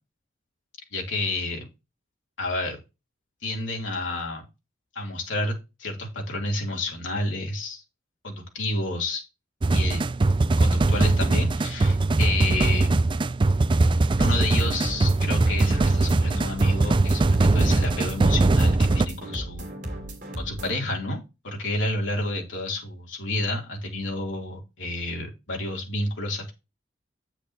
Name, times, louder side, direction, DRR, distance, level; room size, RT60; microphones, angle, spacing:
voice 1, 0.9-1.7 2.4-2.8 3.4-4.5 4.9-7.8 8.2-9.2 9.7-10.0 10.6-12.9 14.2-19.7 20.3-26.5, left 2 dB, 85° left, 0 dB, 3.1 m, -30 dB
sound 1, 9.6-19.1, right 2 dB, 25° right, 0.4 m, -21 dB
sound 2, 14.2-20.7, right 1 dB, 45° right, 2.8 m, -36 dB
9.1 x 8.1 x 2.9 m, 0.26 s
head